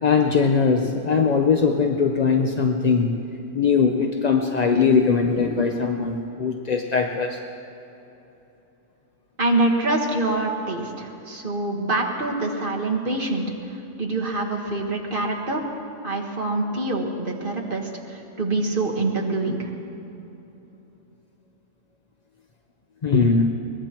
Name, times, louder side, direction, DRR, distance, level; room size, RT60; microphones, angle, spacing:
voice 1, 0.0-3.1 3.5-7.4 23.0-23.5, left 5 dB, 45° left, 3 dB, 0.5 m, -20 dB
voice 2, 9.4-13.4 14.0-15.6 16.0-19.7, right 2 dB, 35° right, 0 dB, 1.6 m, -25 dB
22.0 x 21.0 x 3.0 m, 3.0 s
omnidirectional pair, 1.6 m